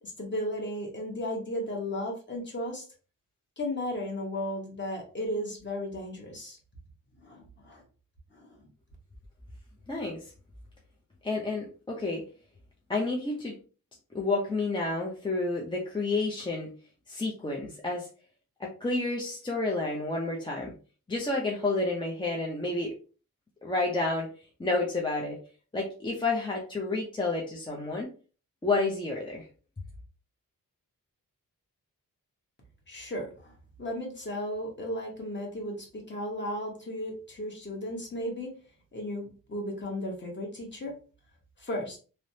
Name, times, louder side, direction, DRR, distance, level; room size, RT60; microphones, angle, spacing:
voice 1, 0.0-2.9 3.6-6.6 7.2-7.8 8.3-8.7 32.9-38.5 38.9-41.0 41.6-42.0, left 1 dB, 30° left, 0 dB, 1.0 m, -35 dB
voice 2, 9.9-10.2 11.2-12.2 12.9-13.5 14.1-16.7 17.1-18.1 18.6-20.7 21.1-22.9 23.6-24.3 24.6-25.4 25.7-28.1 28.6-29.5, left 3 dB, 15° left, -3 dB, 0.5 m, -30 dB
3.2 x 2.0 x 2.7 m, 0.37 s
wide cardioid pair, 125°, 35 cm